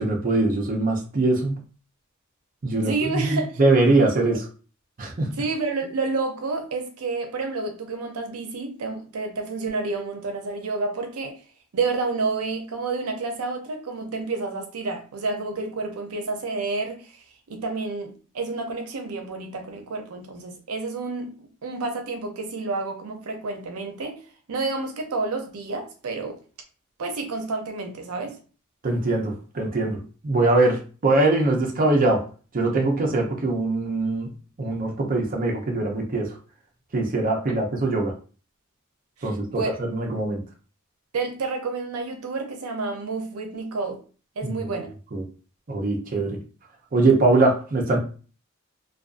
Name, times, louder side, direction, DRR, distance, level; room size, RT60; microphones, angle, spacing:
voice 1, 0.0-1.6 2.6-4.4 5.0-5.3 28.8-32.2 32.5-34.3 34.6-36.4 36.9-38.1 39.2-40.4 44.4-44.5 45.1-45.2 45.7-46.4 46.9-48.0, right 2 dB, 40° right, 0.5 m, -22 dB
voice 2, 2.8-3.5 5.2-11.4 11.7-24.2 24.5-26.3 27.0-28.4 37.5-37.6 39.2-39.8 41.1-44.0 44.4-44.9, right 3 dB, 85° right, 0.5 m, -30 dB
2.5 x 2.2 x 2.4 m
head